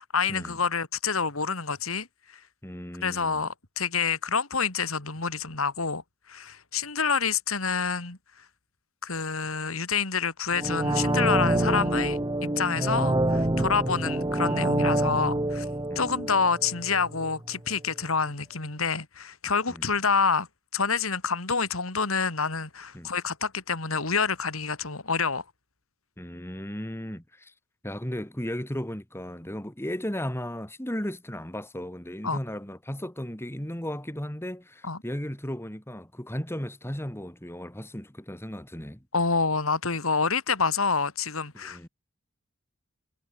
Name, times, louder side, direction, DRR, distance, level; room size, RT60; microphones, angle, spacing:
voice 1, 0.0-2.1 3.0-6.0 6.3-8.2 9.0-15.6 15.9-20.5 20.7-25.4 32.2-32.4 34.8-35.0 39.1-41.9, left 5 dB, 80° left, 3.3 m, -27 dB
voice 2, 2.6-3.5 15.9-16.2 19.7-19.8 22.9-23.1 26.2-27.5 27.8-39.0 41.5-41.9, equal, 10° left, 2.9 m, -35 dB
sound 1, 10.5-17.4 17.7-17.8, right 1 dB, 20° right, 1.6 m, -27 dB
head